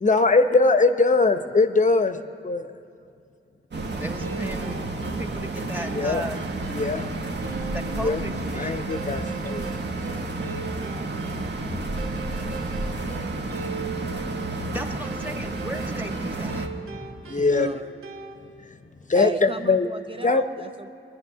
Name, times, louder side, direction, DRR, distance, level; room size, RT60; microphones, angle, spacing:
voice 1, 0.0-2.7 5.8-6.2 6.7-7.1 7.9-8.3 8.6-9.7 11.7-11.8 17.3-17.7 18.6-18.7 19.1-19.9 20.2-20.4, left 3 dB, 35° left, 9 dB, 0.8 m, -21 dB
sound 1, 3.7-16.7, right 2 dB, 55° right, 1.4 m, -31 dB
sound 2, 3.9-18.4, right 5 dB, 85° right, 1.3 m, -41 dB
voice 2, 4.0-6.5 7.7-8.8 14.7-16.7, equal, 10° right, 4 dB, 1.4 m, -36 dB
voice 3, 17.2-17.9 19.2-20.9, right 4 dB, 25° right, 9 dB, 0.4 m, -35 dB
22.0 x 10.5 x 5.6 m, 2.4 s
cardioid pair, 60°, 21 cm